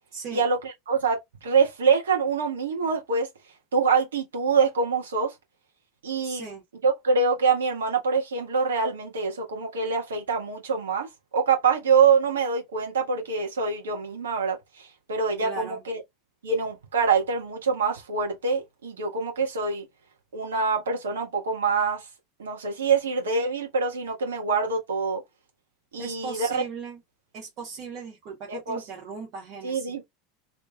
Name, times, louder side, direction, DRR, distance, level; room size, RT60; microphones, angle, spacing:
voice 1, 0.3-3.3 3.7-5.3 6.0-6.4 6.8-11.1 11.3-16.0 16.4-19.9 20.3-22.0 22.4-25.2 25.9-26.6 28.5-28.8 29.6-30.0, right 5 dB, 70° right, 1.3 m, -25 dB
voice 2, 6.2-6.6 15.4-15.8 26.0-27.0 27.3-29.9, right 5 dB, 45° right, 1.2 m, -38 dB
3.2 x 3.0 x 2.2 m
figure-of-eight pair, 80°, 0 cm